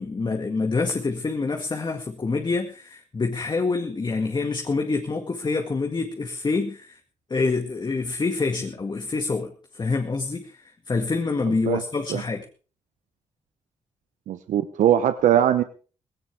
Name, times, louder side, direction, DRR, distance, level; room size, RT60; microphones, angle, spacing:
voice 1, 0.0-7.0 7.3-12.5, left 3 dB, 35° left, 3 dB, 2.1 m, -26 dB
voice 2, 14.3-15.6, right 11 dB, 85° right, 10 dB, 1.0 m, -20 dB
18.0 x 17.0 x 3.6 m, 0.38 s
cardioid pair, 80°, 13 cm